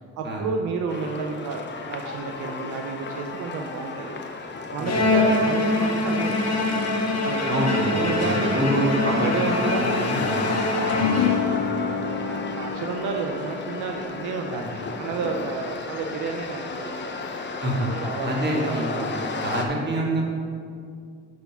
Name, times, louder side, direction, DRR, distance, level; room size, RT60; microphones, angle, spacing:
voice 1, 0.0-1.6 1.9-4.2 4.7-6.6 7.2-10.3 10.8-11.2 11.9-17.4 17.9-19.4, right 4 dB, 75° right, 2 dB, 0.7 m, -31 dB
sound 1, 0.9-19.6, left 3 dB, 35° left, 0.8 m, -33 dB
Bowed string instrument, 4.9-11.8, left 2 dB, 55° left, 1.1 m, -24 dB
voice 2, 7.4-10.5 10.9-11.2 14.5-14.7 17.6-17.9 18.2-20.2, right 1 dB, 35° right, -2 dB, 1.9 m, -27 dB
sound 2, 10.9-17.4, left 7 dB, 75° left, 0.6 m, -30 dB
8.5 x 4.2 x 5.7 m, 2.3 s
cardioid pair, 90°, 30 cm